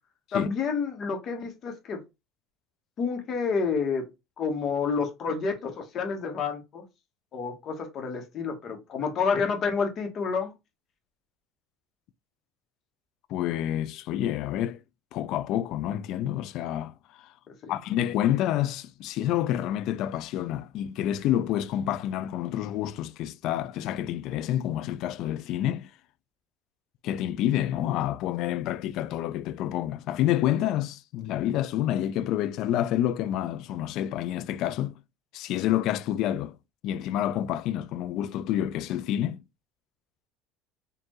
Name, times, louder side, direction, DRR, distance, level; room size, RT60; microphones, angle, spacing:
voice 1, 0.3-2.0 3.0-4.1 4.4-6.8 7.3-10.5 17.5-17.7, left 5 dB, 45° left, 1.2 m, -29 dB
voice 2, 13.3-14.8 15.1-17.3 17.7-25.9 27.0-35.0 35.3-36.6 36.8-39.4, left 12 dB, 65° left, 0.4 m, -28 dB
4.4 x 2.6 x 3.0 m
supercardioid pair, 100°, 0 cm